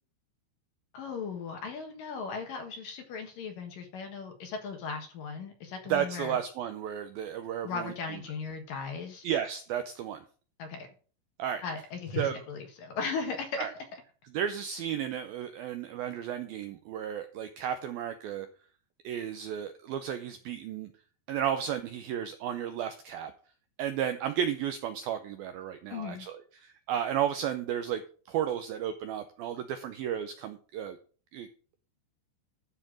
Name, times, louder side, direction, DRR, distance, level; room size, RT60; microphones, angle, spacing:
voice 1, 0.9-6.4 7.6-9.3 10.6-10.9 11.6-13.8 25.9-26.3, left 5 dB, 60° left, 4 dB, 2.7 m, -37 dB
voice 2, 5.9-8.2 9.2-10.2 11.4-11.6 12.2-12.4 13.6-13.7 14.3-18.5 19.0-20.9 21.3-23.3 23.8-28.0 28.3-31.0 31.3-31.5, right 9 dB, 85° right, 9 dB, 2.1 m, -33 dB
12.5 x 4.5 x 7.5 m, 0.41 s
omnidirectional pair, 5.1 m